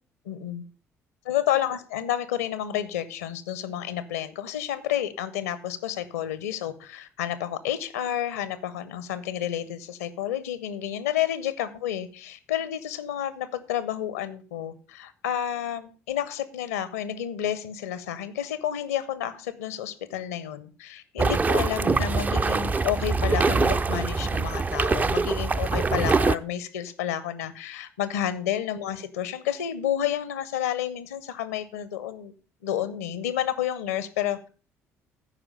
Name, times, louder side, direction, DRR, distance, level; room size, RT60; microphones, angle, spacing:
voice 1, 0.2-0.6 1.2-32.3 32.6-34.5, left 11 dB, 70° left, 15 dB, 0.7 m, -30 dB
sound 1, 21.2-26.4, right 4 dB, 20° right, 0.4 m, -24 dB
13.0 x 5.0 x 5.3 m, 0.38 s
figure-of-eight pair, 50°, 8 cm